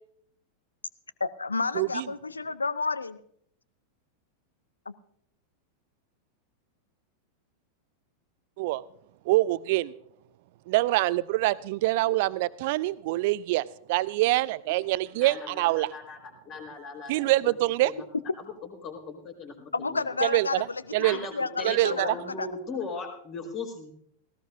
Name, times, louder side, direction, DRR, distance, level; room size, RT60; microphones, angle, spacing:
voice 1, 1.2-3.2 4.9-5.0 19.7-20.8 21.1-22.1 22.4-22.5, left 4 dB, 80° left, 18 dB, 0.6 m, -30 dB
voice 2, 1.7-2.1 8.6-8.8 9.3-9.9 10.7-15.9 17.1-17.9 20.2-20.7 20.9-21.2 21.6-22.2, right 18 dB, 50° right, 19 dB, 0.5 m, -25 dB
voice 3, 15.1-16.2 16.4-17.5 17.8-18.0 18.6-20.1 21.0-23.9, left 4 dB, 35° left, 3 dB, 4.3 m, -38 dB
18.0 x 17.0 x 2.7 m, 0.67 s
figure-of-eight pair, 90°, 0 cm